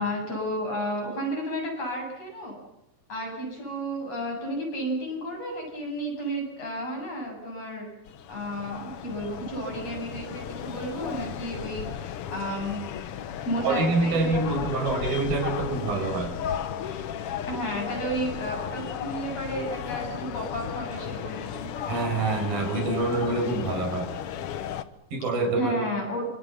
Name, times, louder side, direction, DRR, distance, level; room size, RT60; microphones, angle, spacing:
voice 1, 0.0-2.6 3.1-7.9 8.3-12.8 13.5-15.1 17.4-21.7 25.6-26.3, equal, 45° left, 1 dB, 9.0 m, -32 dB
sound 1, 8.1-24.8, left 9 dB, 75° left, 1.3 m, -35 dB
voice 2, 13.6-16.4 21.9-24.1 25.1-25.8, right 3 dB, 90° right, 4 dB, 7.3 m, -26 dB
25.5 x 24.5 x 7.1 m, 0.86 s
omnidirectional pair, 4.1 m